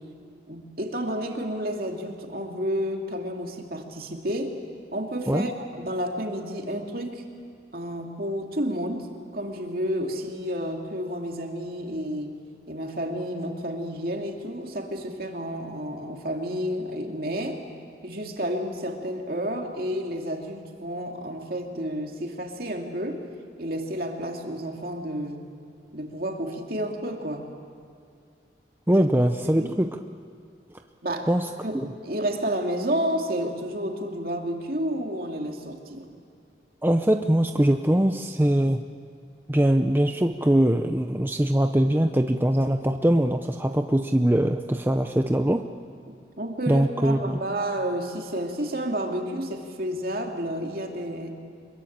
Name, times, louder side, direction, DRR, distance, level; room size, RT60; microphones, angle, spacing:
voice 1, 0.5-4.6 4.9-7.2 7.7-12.4 12.7-17.6 18.0-23.2 23.6-25.5 25.9-27.5 29.4-29.8 31.0-31.3 31.6-36.1 46.4-51.4, equal, 55° right, 2 dB, 2.8 m, -30 dB
voice 2, 28.9-30.0 31.3-31.5 31.7-31.9 36.8-38.8 39.5-45.7 46.7-47.4, right 1 dB, 10° right, 6 dB, 0.6 m, -22 dB
25.5 x 22.5 x 8.8 m, 2.3 s
head